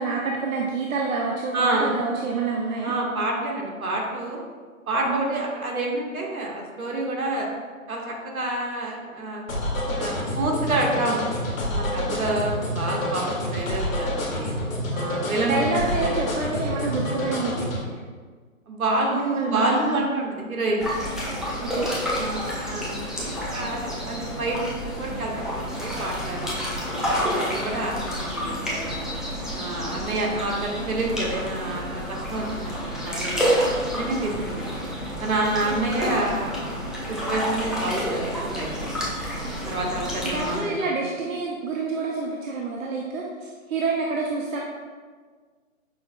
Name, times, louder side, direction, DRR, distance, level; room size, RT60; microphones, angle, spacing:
voice 1, 0.0-2.9 5.0-5.2 15.4-18.0 19.1-20.1 21.6-22.0 35.7-36.3 40.2-44.6, right 4 dB, 70° right, -2 dB, 0.5 m, -28 dB
voice 2, 1.5-2.0 2.8-4.4 4.9-7.5 7.9-9.6 9.9-11.2 11.7-14.5 14.9-15.8 16.0-16.2 18.7-20.9 22.1-29.0 29.5-34.6 35.2-36.8 37.1-38.9 39.6-40.6, right 2 dB, 85° right, -1 dB, 1.1 m, -28 dB
sound 1, 9.5-17.8, left 1 dB, 70° left, 1.1 m, -28 dB
sound 2, 20.8-40.6, equal, ahead, 0.3 m, -29 dB
5.4 x 2.0 x 2.5 m, 1.6 s
hypercardioid pair, 180°, 41 cm